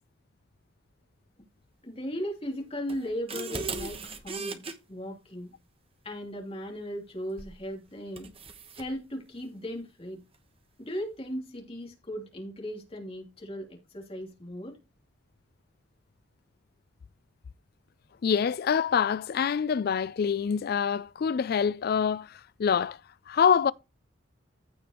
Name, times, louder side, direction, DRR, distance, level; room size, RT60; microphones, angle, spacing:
voice 1, 1.8-4.6 4.9-5.5 6.0-8.3 8.7-10.2 10.8-14.8, equal, 30° left, 2.9 m, -37 dB
sound 1, 2.9-4.7 7.4-7.6 8.2-8.9, right 4 dB, 30° right, 1.1 m, -37 dB
voice 2, 18.2-23.0 23.3-23.7, left 7 dB, 55° left, 0.3 m, -25 dB
15.0 x 5.1 x 3.0 m
head